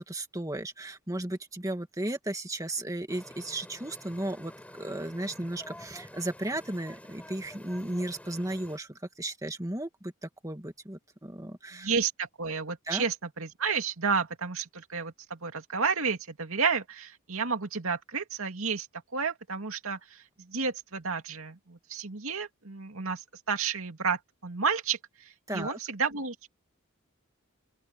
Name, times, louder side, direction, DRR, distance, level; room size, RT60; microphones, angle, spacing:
voice 1, 0.0-4.5 4.8-11.9 12.9-13.0 25.5-25.8, right 1 dB, 15° right, 2.2 m, -35 dB
sound 1, 3.1-8.8, left 1 dB, 5° left, 7.2 m, -49 dB
voice 2, 11.7-18.9 19.1-26.5, right 5 dB, 75° right, 2.5 m, -31 dB
open air
head